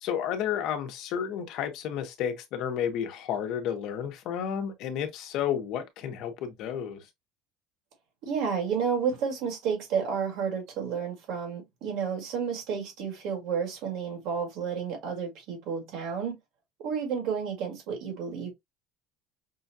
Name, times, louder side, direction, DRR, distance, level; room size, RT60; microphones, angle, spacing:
voice 1, 0.0-7.1, left 9 dB, 55° left, 0.9 m, -31 dB
voice 2, 8.2-16.4 16.8-18.5, right 6 dB, 60° right, 1.8 m, -31 dB
5.5 x 2.3 x 2.6 m
cardioid pair, 165°, 0 cm